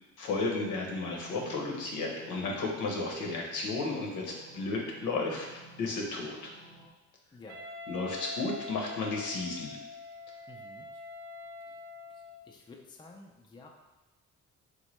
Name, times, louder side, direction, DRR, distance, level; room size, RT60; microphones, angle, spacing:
voice 1, 0.2-5.5 5.8-6.5 7.9-9.8, left 3 dB, 85° left, -1 dB, 0.8 m, -33 dB
sound 1, 0.7-6.9, right 2 dB, 80° right, 1.0 m, -53 dB
Wind instrument woodwind instrument, 7.5-12.5, left 3 dB, 45° right, 0.5 m, -44 dB
voice 2, 10.5-10.9 12.1-13.8, left 3 dB, 15° left, 1 dB, 0.3 m, -52 dB
3.1 x 2.2 x 3.0 m, 1.1 s
cardioid pair, 90°, 30 cm